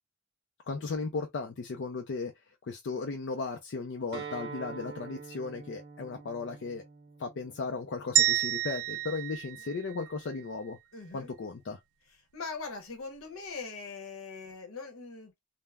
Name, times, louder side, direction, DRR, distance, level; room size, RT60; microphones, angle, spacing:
voice 1, 0.7-6.8 7.2-10.8 11.1-11.8, left 4 dB, 55° left, 0.4 m, -36 dB
Acoustic guitar, 4.1-9.3, right 5 dB, 50° right, 0.6 m, -46 dB
sound 1, 8.2-10.4, right 12 dB, 80° right, 0.3 m, -29 dB
voice 2, 10.9-11.3 12.3-15.4, left 4 dB, 75° left, 0.8 m, -41 dB
3.3 x 2.0 x 2.2 m
head